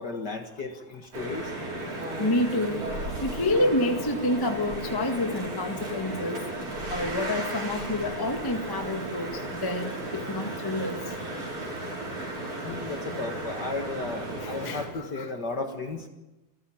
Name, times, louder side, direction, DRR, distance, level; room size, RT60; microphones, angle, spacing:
voice 1, 0.0-1.5 12.6-16.1, left 3 dB, 40° left, 5 dB, 1.8 m, -34 dB
sound 1, 1.1-14.9, right 1 dB, 50° right, 6.7 m, -35 dB
voice 2, 2.2-2.9 3.2-6.4 6.9-9.3 9.6-11.0 14.6-14.8 15.2-15.3, left 1 dB, 10° left, 4 dB, 1.2 m, -28 dB
28.0 x 14.0 x 8.8 m, 1.0 s
omnidirectional pair, 3.4 m